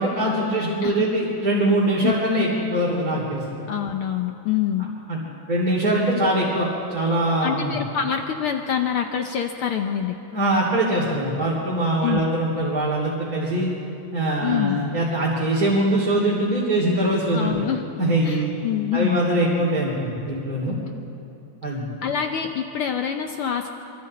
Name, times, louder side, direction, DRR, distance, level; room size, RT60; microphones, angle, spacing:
voice 1, 0.0-3.4 5.1-5.2 5.5-7.7 10.3-13.7 14.1-17.5 18.0-18.5 18.9-20.8 21.6-21.8, right 1 dB, 30° right, -5 dB, 3.3 m, -22 dB
voice 2, 3.7-4.9 7.4-10.2 12.0-12.3 14.4-14.8 17.3-17.9 18.2-19.2 22.0-23.7, left 9 dB, 75° left, 5 dB, 1.2 m, -25 dB
27.0 x 24.5 x 4.3 m, 2.8 s
omnidirectional pair, 3.5 m